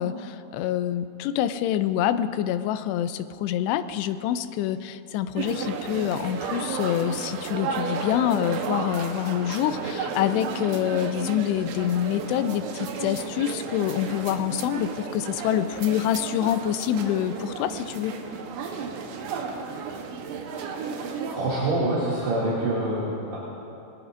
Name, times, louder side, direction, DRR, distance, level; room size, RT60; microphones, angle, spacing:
voice 1, 0.0-18.2, left 11 dB, 85° left, 11 dB, 2.6 m, -26 dB
sound 1, 5.4-21.4, right 5 dB, 90° right, 3.3 m, -33 dB
voice 2, 21.3-23.4, right 2 dB, 70° right, -10 dB, 4.4 m, -25 dB
21.5 x 19.0 x 2.6 m, 2.7 s
omnidirectional pair, 5.0 m